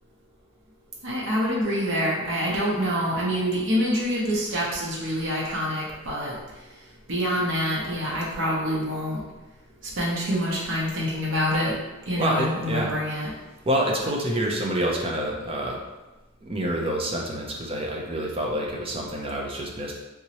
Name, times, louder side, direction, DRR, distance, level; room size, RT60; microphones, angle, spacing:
voice 1, 1.0-6.4 7.1-9.2 10.0-11.8 12.1-13.3, equal, 65° right, -5 dB, 0.8 m, -26 dB
voice 2, 12.2-13.0 13.7-15.8 16.4-19.9, right 1 dB, 25° right, -1 dB, 0.5 m, -27 dB
3.6 x 3.0 x 2.9 m, 1.1 s
head